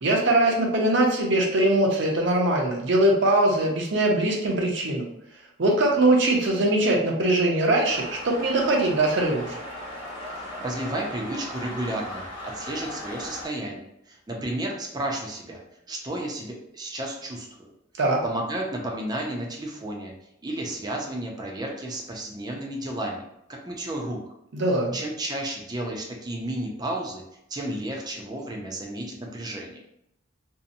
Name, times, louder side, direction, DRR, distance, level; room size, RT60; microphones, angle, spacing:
voice 1, 0.0-5.0 5.6-9.6 18.0-18.2 24.5-25.0, right 1 dB, 65° right, 0 dB, 0.6 m, -22 dB
sound 1, 7.8-13.5, left 1 dB, 30° left, 0.9 m, -37 dB
voice 2, 10.3-15.6 15.9-17.7 18.2-20.1 20.4-24.2 24.9-27.2 27.5-29.8, right 1 dB, 20° right, 0 dB, 0.4 m, -32 dB
2.7 x 2.0 x 2.5 m, 0.77 s
head